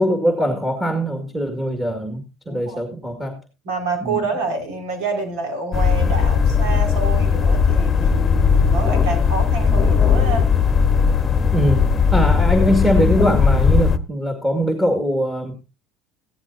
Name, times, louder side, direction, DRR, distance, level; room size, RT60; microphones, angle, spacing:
voice 1, 0.0-3.4 4.0-4.2 11.5-11.9 12.1-15.5, equal, 10° right, 4 dB, 2.3 m, -21 dB
voice 2, 2.5-2.8 3.6-10.5, right 3 dB, 80° right, 4 dB, 5.2 m, -27 dB
sound 1, 5.7-14.0, left 6 dB, 25° left, 1.1 m, -17 dB
15.5 x 12.5 x 2.8 m, 0.28 s
cardioid pair, 125°, 0 cm